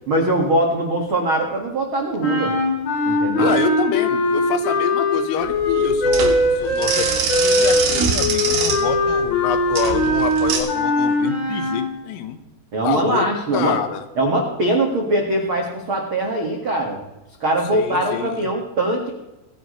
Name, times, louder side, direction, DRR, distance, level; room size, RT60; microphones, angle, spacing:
voice 1, 0.1-2.5 3.0-3.5 12.7-13.8 14.2-17.0 17.4-19.1, right 1 dB, 80° right, 1 dB, 1.1 m, -21 dB
sound 1, 2.2-11.9, left 1 dB, 50° left, 5.6 m, -20 dB
voice 2, 3.4-12.4 12.8-14.0 17.7-18.5, left 8 dB, 85° left, 9 dB, 3.8 m, -27 dB
sound 2, 5.4-10.6, right 5 dB, 55° right, 4.1 m, -24 dB
25.0 x 10.5 x 3.2 m, 1.0 s
omnidirectional pair, 5.8 m